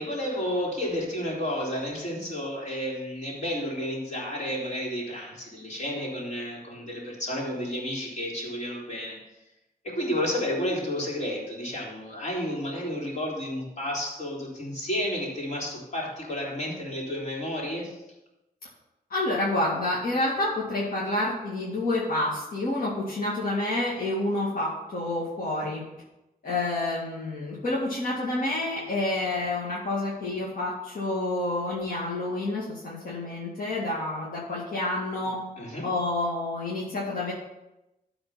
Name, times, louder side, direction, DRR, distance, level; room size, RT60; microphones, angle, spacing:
voice 1, 0.0-9.2 9.8-18.0 35.6-35.9, left 1 dB, 50° left, -4 dB, 3.5 m, -31 dB
voice 2, 19.1-25.8 26.4-35.4 35.8-37.3, left 2 dB, 70° left, -6 dB, 2.1 m, -28 dB
12.5 x 4.3 x 5.7 m, 0.94 s
wide cardioid pair, 125°, 15 cm